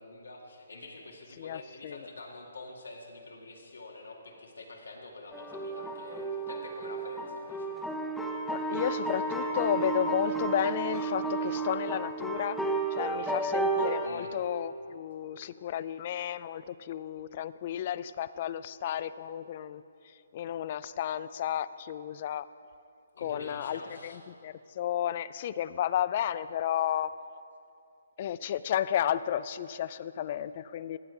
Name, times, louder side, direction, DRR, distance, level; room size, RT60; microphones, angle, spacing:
voice 1, 0.0-7.7 14.0-14.3 23.1-24.2, left 2 dB, 85° left, 0 dB, 2.0 m, -46 dB
voice 2, 1.4-2.0 8.5-12.6 12.9-19.8 20.3-22.5 23.2-23.8 24.4-27.1 28.2-31.0, left 10 dB, 40° left, 16 dB, 0.4 m, -32 dB
sound 1, 5.3-14.1, right 3 dB, ahead, 0.8 m, -32 dB
15.0 x 7.9 x 4.6 m, 2.7 s
hypercardioid pair, 145°, 0 cm